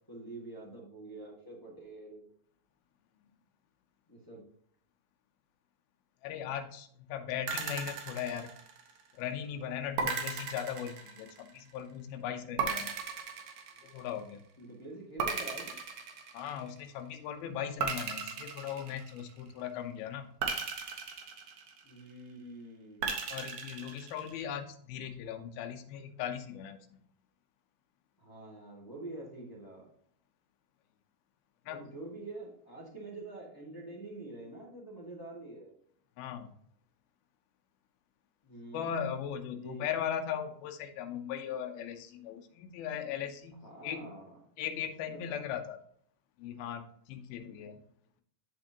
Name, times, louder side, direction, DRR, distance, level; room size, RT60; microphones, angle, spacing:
voice 1, 0.1-2.2 4.1-4.4 14.6-15.8 21.8-23.2 28.2-29.9 31.6-35.7 38.4-39.0 39.5-39.9 43.6-44.4 45.1-45.5 47.5-47.6, right 2 dB, 15° left, -4 dB, 0.8 m, -46 dB
voice 2, 6.2-8.5 9.1-13.0 13.8-14.4 16.3-20.3 23.3-27.0 31.7-31.8 36.2-36.5 38.7-44.1 44.6-45.8 46.4-47.8, left 9 dB, 85° left, 6 dB, 2.7 m, -38 dB
sound 1, 7.5-9.1 10.0-11.6 12.6-14.3 15.2-16.8 17.8-19.5 20.4-22.1 23.0-24.4, right 5 dB, 70° right, 2.6 m, -36 dB
13.0 x 4.4 x 2.9 m, 0.65 s
omnidirectional pair, 4.2 m